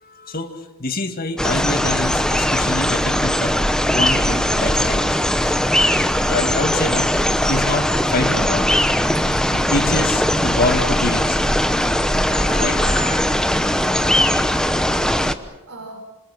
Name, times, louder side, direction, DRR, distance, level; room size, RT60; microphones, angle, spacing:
voice 1, 0.0-0.5 0.8-3.5 3.9-5.6 6.2-8.7 9.2-11.5 12.3-13.3, left 2 dB, 40° left, 6 dB, 2.1 m, -26 dB
sound 1, 1.4-15.3, equal, 5° left, 0.9 m, -19 dB
voice 2, 13.6-16.0, right 2 dB, 80° right, 0 dB, 4.6 m, -43 dB
27.0 x 26.5 x 6.1 m, 1.1 s
head